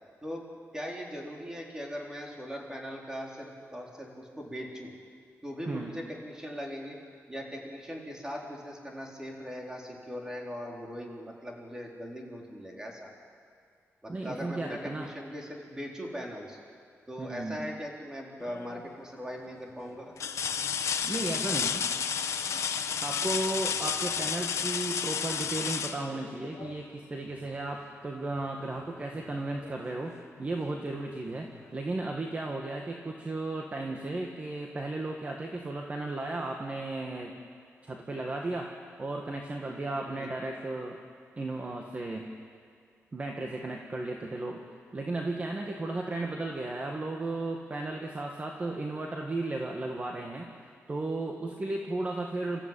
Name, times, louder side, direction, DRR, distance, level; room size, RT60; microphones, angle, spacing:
voice 1, 0.7-4.9 5.4-7.0 7.3-13.1 14.0-16.6 17.1-20.1 40.2-40.3, equal, 15° right, -1 dB, 4.2 m, -40 dB
voice 2, 14.1-15.1 17.2-17.6 21.0-21.8 23.0-37.3 37.8-38.7 39.0-41.0 41.4-42.3 43.1-44.6 44.9-52.6, right 2 dB, 30° right, 1 dB, 1.8 m, -35 dB
sound 1, 18.4-18.9 19.4-19.5 20.2-26.8 28.6-28.8 29.2-30.3 31.6-31.7, left 7 dB, 80° left, 1.1 m, -32 dB
28.5 x 14.5 x 9.1 m, 2.2 s
wide cardioid pair, 125°, 5 cm